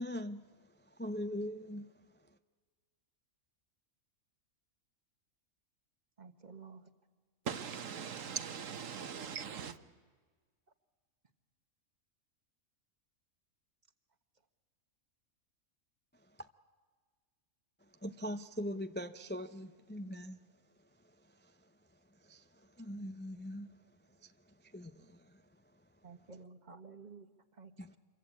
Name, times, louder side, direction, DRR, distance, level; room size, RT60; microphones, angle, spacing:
voice 1, 0.0-2.4 16.1-16.5 17.8-26.3 27.8-28.0, equal, 15° left, 0.4 m, -44 dB
voice 2, 6.2-6.9 26.0-27.3 27.5-28.0, right 5 dB, 30° right, 1.5 m, -52 dB
voice 3, 7.4-9.8, right 7 dB, 65° right, 1.4 m, -40 dB
27.5 x 23.5 x 8.5 m
omnidirectional pair, 1.5 m